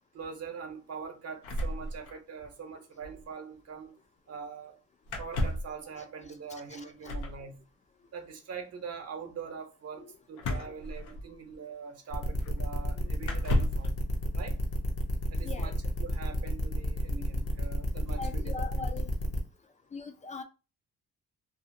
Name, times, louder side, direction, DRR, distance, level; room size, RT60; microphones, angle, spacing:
voice 1, 0.1-3.9 4.3-4.7 5.2-7.6 8.1-14.0 14.3-14.6 15.3-18.9, right 6 dB, 55° right, 0.8 m, -43 dB
sound 1, 1.4-2.5 2.8-2.9 3.0-3.2 5.1-5.8 7.0-7.4 10.4-11.5 12.4-12.5 13.2-13.9, left 1 dB, 90° left, 0.6 m, -32 dB
voice 2, 6.5-7.2 10.0-10.1 13.0-13.1 15.4-15.7 18.2-19.1 19.9-20.4, left 4 dB, 25° left, 0.3 m, -41 dB
sound 2, 12.1-19.4, equal, 50° left, 0.8 m, -32 dB
2.7 x 2.4 x 2.6 m
cardioid pair, 90°, 30 cm